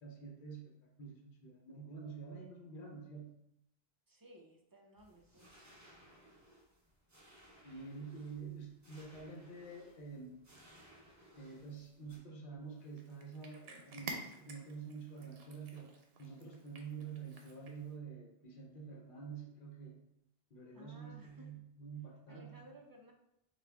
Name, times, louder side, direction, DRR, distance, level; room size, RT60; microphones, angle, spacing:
voice 1, 0.0-3.3 7.6-10.3 11.3-15.9 16.2-20.0 20.5-22.7, right 5 dB, 55° left, 0 dB, 1.0 m, -48 dB
voice 2, 4.1-5.5 20.7-21.6 22.3-23.1, right 1 dB, 35° right, 2 dB, 0.4 m, -58 dB
sound 1, 5.0-12.2, equal, 20° right, 0.8 m, -62 dB
Cat, 12.7-18.0, right 3 dB, 70° right, 0.9 m, -51 dB
5.9 x 2.4 x 3.4 m, 0.82 s
omnidirectional pair, 1.1 m